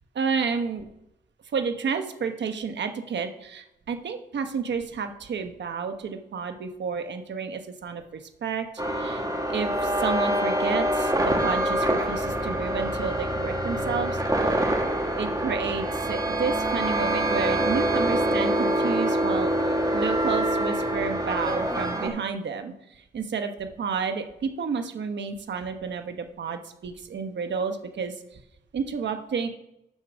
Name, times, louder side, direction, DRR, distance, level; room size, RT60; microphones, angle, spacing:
voice 1, 0.1-0.9 1.5-8.7 8.9-9.2 9.5-14.5 15.1-28.4 28.7-29.5, right 5 dB, 85° right, 6 dB, 1.1 m, -31 dB
sound 1, 8.8-22.1, right 1 dB, 20° right, 2.1 m, -25 dB
12.0 x 4.7 x 6.3 m, 0.86 s
cardioid pair, 70°, 18 cm